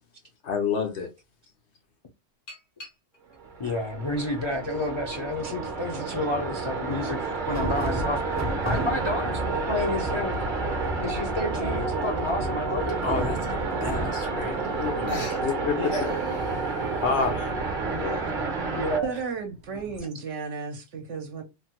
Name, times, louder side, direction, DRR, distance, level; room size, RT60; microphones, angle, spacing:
voice 1, 0.4-1.1 13.0-16.1 17.0-17.6 17.9-18.3, left 5 dB, 65° left, 1.0 m, -29 dB
sound 1, 2.5-3.4 4.1-5.1 5.7-5.8 7.0-8.0 9.7-9.8 10.3-10.4 10.5-10.6 11.0-11.3 12.3-12.4 12.9-13.0 14.1-14.2 14.4-14.8 15.1-17.3, left 2 dB, 85° left, 1.6 m, -42 dB
sound 2, 3.4-19.0, right 4 dB, 50° right, 0.8 m, -30 dB
voice 2, 3.6-8.2 8.6-10.4 11.0-13.0 15.8-16.2 18.8-19.2, left 1 dB, 35° left, 0.5 m, -30 dB
sound 3, 5.2-5.3 6.6-15.2 15.6-15.7 15.9-19.1 19.7-20.0, equal, 25° right, 0.4 m, -35 dB
voice 3, 19.0-21.4, right 5 dB, 75° right, 0.9 m, -34 dB
3.2 x 2.1 x 2.8 m
omnidirectional pair, 1.2 m